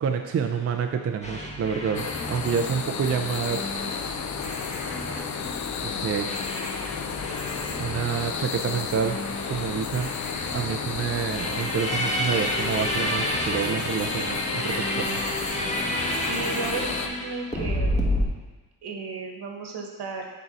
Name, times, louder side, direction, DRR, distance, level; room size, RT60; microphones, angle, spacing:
voice 1, 0.0-3.7 5.1-5.3 5.8-6.3 7.8-9.2 9.5-10.1 10.5-15.2, right 7 dB, 35° right, 4 dB, 0.5 m, -28 dB
sound 1, 1.2-18.3, equal, 15° left, 1.1 m, -31 dB
sound 2, 1.9-17.1, left 7 dB, 45° left, 0.5 m, -32 dB
voice 2, 16.2-18.1 18.8-20.3, right 4 dB, 65° right, 2 dB, 1.3 m, -34 dB
6.8 x 4.5 x 4.1 m, 1.2 s
cardioid pair, 85°, 43 cm